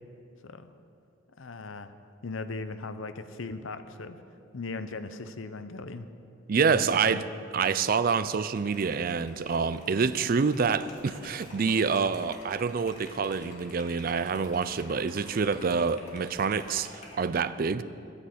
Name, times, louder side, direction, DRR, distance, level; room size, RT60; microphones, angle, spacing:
voice 1, 1.4-1.9 2.2-4.2 4.5-6.1 6.7-7.2, left 3 dB, 85° left, 10 dB, 0.7 m, -38 dB
voice 2, 6.5-7.2 7.5-17.8, right 5 dB, 45° right, 14 dB, 0.4 m, -27 dB
Liquid, 7.7-17.2, left 1 dB, 40° left, 2.2 m, -50 dB
11.0 x 9.8 x 7.9 m, 2.5 s
head